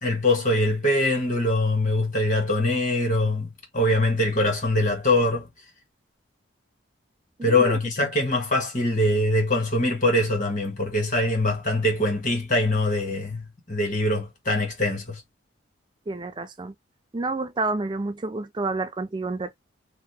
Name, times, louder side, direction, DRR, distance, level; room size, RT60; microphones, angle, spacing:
voice 1, 0.0-3.5 3.7-5.5 7.4-13.4 13.7-15.2, left 1 dB, 40° left, 1.7 m, -23 dB
voice 2, 7.4-7.8 16.1-16.7 17.1-19.5, right 3 dB, 25° right, 0.4 m, -29 dB
2.8 x 2.5 x 3.5 m
head